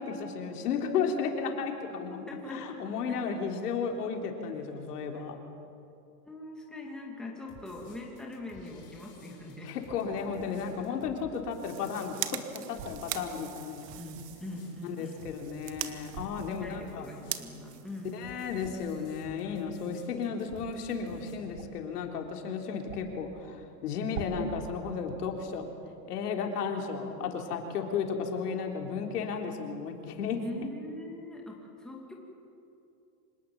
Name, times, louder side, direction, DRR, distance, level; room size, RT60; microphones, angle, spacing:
voice 1, 0.0-2.2 2.5-5.4 9.6-12.1 12.5-13.9 14.8-17.0 18.1-25.7 26.1-30.4, left 6 dB, 75° left, 3 dB, 3.8 m, -34 dB
voice 2, 2.3-3.3 5.1-5.2 6.2-9.7 10.3-10.8 14.0-15.3 16.4-18.2 30.4-32.1, left 2 dB, ahead, -2 dB, 2.4 m, -42 dB
sound 1, 7.5-21.3, left 5 dB, 25° left, 4.8 m, -55 dB
sound 2, 11.4-18.7, right 11 dB, 85° right, 1.9 m, -42 dB
sound 3, 12.7-13.0 16.0-16.4 18.5-19.0 20.4-20.6 21.5-21.9 22.2-22.3 22.8-23.3 24.0-24.5, right 6 dB, 45° right, 2.2 m, -43 dB
26.0 x 19.0 x 8.8 m, 2.6 s
supercardioid pair, 165°, 47 cm